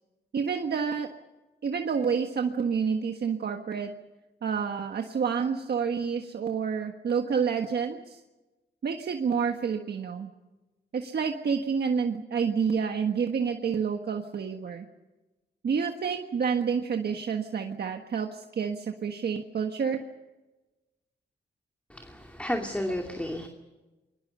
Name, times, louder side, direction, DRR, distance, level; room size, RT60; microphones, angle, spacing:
voice 1, 0.3-1.1 1.6-3.9 4.4-8.2 8.8-10.3 10.9-14.9 15.6-20.0, right 6 dB, 65° right, 4 dB, 1.5 m, -29 dB
voice 2, 21.9-23.5, left 1 dB, 5° left, 2 dB, 2.5 m, -32 dB
29.0 x 23.0 x 5.6 m, 1.1 s
cardioid pair, 95°, 18 cm